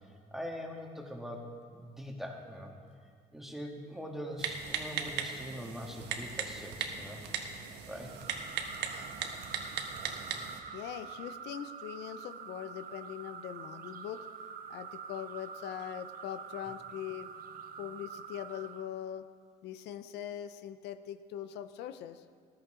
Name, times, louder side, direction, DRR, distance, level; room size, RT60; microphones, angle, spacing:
voice 1, 0.3-2.7 3.3-7.2 7.9-8.1, equal, ahead, 1 dB, 1.6 m, -42 dB
Typing, 4.4-10.6, right 6 dB, 80° right, 1.2 m, -38 dB
sound 1, 8.0-18.9, right 7 dB, 60° right, 0.8 m, -46 dB
voice 2, 10.7-14.2 14.7-17.3 17.8-19.2 19.6-22.2, left 10 dB, 85° left, 10 dB, 0.6 m, -42 dB
14.0 x 13.5 x 3.8 m, 2.1 s
cardioid pair, 110°, 17 cm